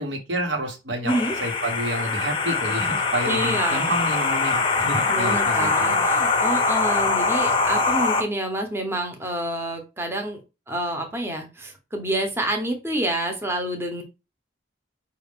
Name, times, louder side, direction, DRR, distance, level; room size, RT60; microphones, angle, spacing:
voice 1, 0.0-1.1 1.4-6.1, right 1 dB, 85° right, 2 dB, 1.2 m, -29 dB
voice 2, 1.0-1.3 3.3-4.0 5.1-10.4 10.7-14.0, right 1 dB, 15° right, 3 dB, 0.8 m, -28 dB
sound 1, 1.1-8.2, left 3 dB, 30° left, 0.6 m, -23 dB
5.2 x 2.4 x 3.5 m, 0.27 s
head